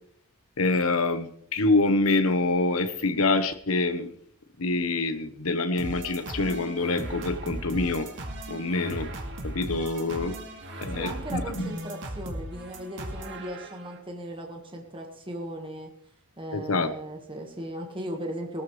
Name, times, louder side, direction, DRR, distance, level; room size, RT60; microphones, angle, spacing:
voice 1, 0.6-4.1 4.6-8.1 8.5-9.1 9.4-10.4 10.8-11.7 16.5-16.9, left 3 dB, 70° left, 10 dB, 1.1 m, -26 dB
sound 1, 5.8-14.0, right 1 dB, 55° right, 2.2 m, -37 dB
voice 2, 10.9-15.9 16.4-18.6, right 1 dB, 25° right, 2 dB, 1.6 m, -37 dB
18.5 x 13.5 x 3.3 m, 0.66 s
head